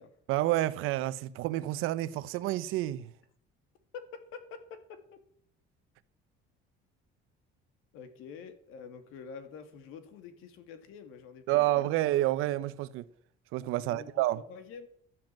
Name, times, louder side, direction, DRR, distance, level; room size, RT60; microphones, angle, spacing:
voice 1, 0.3-3.1 11.5-13.1 13.5-14.4, right 15 dB, 85° right, 0.9 m, -29 dB
voice 2, 3.9-5.2 7.9-11.9 13.9-14.9, left 6 dB, 85° left, 2.2 m, -47 dB
12.5 x 7.8 x 7.4 m
cardioid pair, 145°, 21 cm